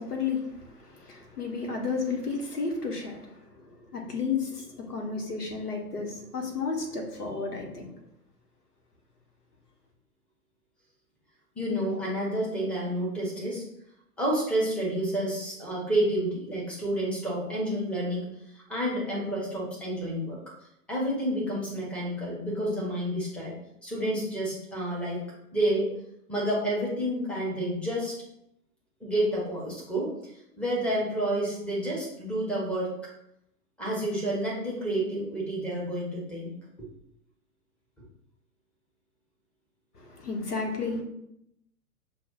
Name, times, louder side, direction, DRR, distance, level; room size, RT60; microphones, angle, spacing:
voice 1, 0.0-7.9 39.9-41.0, left 4 dB, 75° left, 1 dB, 1.3 m, -32 dB
voice 2, 11.6-13.6 14.2-18.3 18.5-20.4 20.9-23.5 23.8-25.2 25.5-25.9 26.3-28.2 29.0-30.1 30.6-32.9 33.8-36.5 36.8-36.9, right 1 dB, ahead, -5 dB, 0.8 m, -29 dB
5.8 x 2.3 x 3.8 m, 0.78 s
figure-of-eight pair, 110°, 47 cm